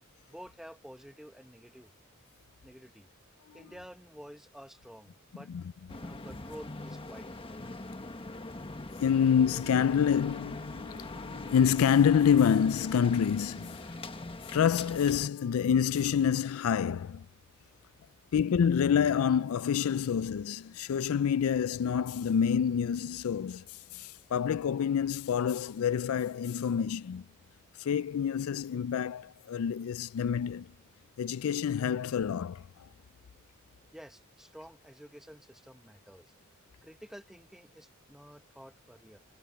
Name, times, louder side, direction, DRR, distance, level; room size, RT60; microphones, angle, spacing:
voice 1, 0.3-1.9 2.6-3.1 3.5-5.5 6.0-7.6 33.9-36.3 36.8-39.2, equal, ahead, 1.1 m, -50 dB
sound 1, 5.9-15.3, left 2 dB, 25° left, 1.3 m, -42 dB
voice 2, 9.0-13.8 14.5-17.3 18.3-27.2 27.8-30.7 31.2-32.9, left 7 dB, 75° left, 0.4 m, -27 dB
head